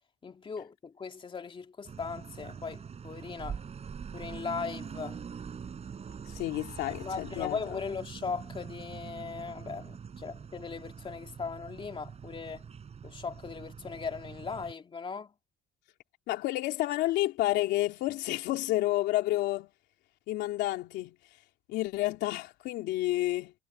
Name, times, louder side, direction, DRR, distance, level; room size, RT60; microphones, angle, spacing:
voice 1, 0.2-3.6 4.1-5.2 6.8-12.6 13.0-15.3, left 5 dB, 30° left, 2.7 m, -38 dB
sound 1, 1.8-14.7, right 6 dB, 40° right, 7.4 m, -44 dB
voice 2, 6.3-7.8 16.3-19.7 20.3-21.2 21.7-23.5, left 16 dB, 85° left, 3.3 m, -30 dB
cardioid pair, 110°, 17 cm